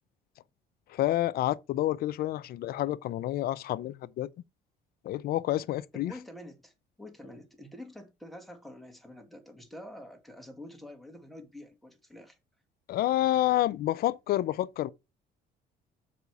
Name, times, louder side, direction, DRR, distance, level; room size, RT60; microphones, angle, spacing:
voice 1, 0.9-4.3 5.0-6.1 12.9-14.9, left 14 dB, 65° left, 0.5 m, -28 dB
voice 2, 5.9-12.4, left 1 dB, ahead, 2.0 m, -47 dB
6.9 x 5.0 x 4.7 m
cardioid pair, 110°, 17 cm